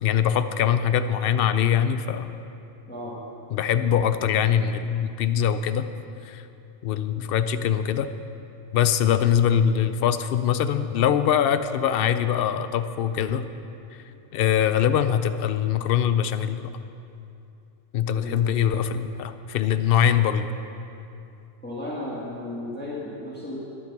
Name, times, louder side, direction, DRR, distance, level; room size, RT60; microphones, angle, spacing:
voice 1, 0.0-2.3 3.5-5.8 6.3-6.4 6.8-8.1 8.7-13.5 14.3-16.7 17.9-20.5, left 9 dB, 65° left, 11 dB, 0.7 m, -23 dB
voice 2, 2.9-3.2 18.2-18.5 21.6-23.6, left 1 dB, 10° left, -6 dB, 1.6 m, -34 dB
11.5 x 10.5 x 6.0 m, 2.8 s
omnidirectional pair, 1.1 m